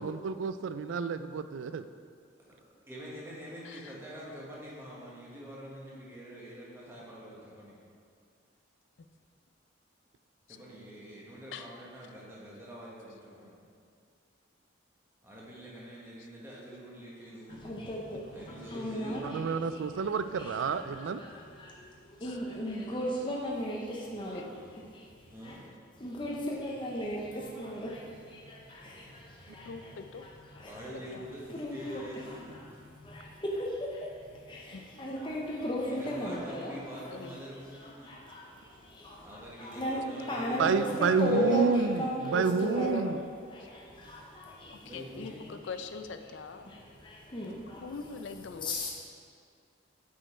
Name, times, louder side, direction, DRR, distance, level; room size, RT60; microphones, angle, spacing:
voice 1, 0.0-1.9 19.2-21.2 40.6-43.2, right 5 dB, 75° right, 12 dB, 0.3 m, -29 dB
voice 2, 2.9-7.8 10.5-13.6 15.2-17.7 18.3-19.4 25.3-25.6 30.6-32.8 35.8-38.1 39.2-41.7 44.8-45.6, equal, 10° right, -6 dB, 1.4 m, -45 dB
voice 3, 3.6-4.0 10.5-10.6 11.5-11.7 19.0-19.3 22.2-22.4 24.3-24.5 29.6-30.2 31.1-31.3 34.7-34.8 37.1-37.4 44.7-46.7 47.8-48.9, left 5 dB, 70° left, 8 dB, 0.4 m, -43 dB
voice 4, 17.5-19.4 19.7-19.8 20.4-25.6 26.0-30.0 30.6-30.8 31.5-32.6 33.0-36.8 37.7-43.0 43.5-44.9 46.7-47.8 48.6-48.9, left 1 dB, 25° left, -3 dB, 0.7 m, -36 dB
7.8 x 5.2 x 4.4 m, 2.2 s
head